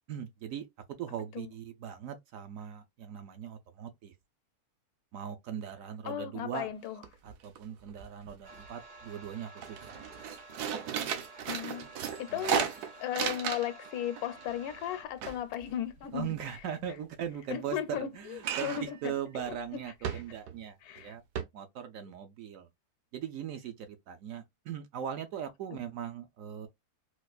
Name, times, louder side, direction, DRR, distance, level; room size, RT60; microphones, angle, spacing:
voice 1, 0.1-4.1 5.1-6.7 7.2-10.0 10.6-11.0 12.3-12.4 16.1-21.2 21.5-22.7 23.1-26.7, right 9 dB, 70° right, 0.9 m, -40 dB
voice 2, 6.0-7.0 11.5-11.9 12.2-12.7 13.0-16.4 17.5-19.1 19.5-19.6 20.0-20.2 20.8-21.1 25.7-25.8, left 10 dB, 80° left, 1.1 m, -36 dB
sound 1, 6.7-6.8 7.0-7.6 7.9-8.7 9.1-9.3 9.6-13.9 14.2-16.6 18.4-19.0 19.4-19.5 20.0-20.6 21.0-21.1 21.4-21.5, right 8 dB, 85° right, 1.2 m, -35 dB
sound 2, 8.4-15.0, right 2 dB, 40° right, 0.7 m, -51 dB
4.2 x 2.4 x 2.3 m
omnidirectional pair, 1.6 m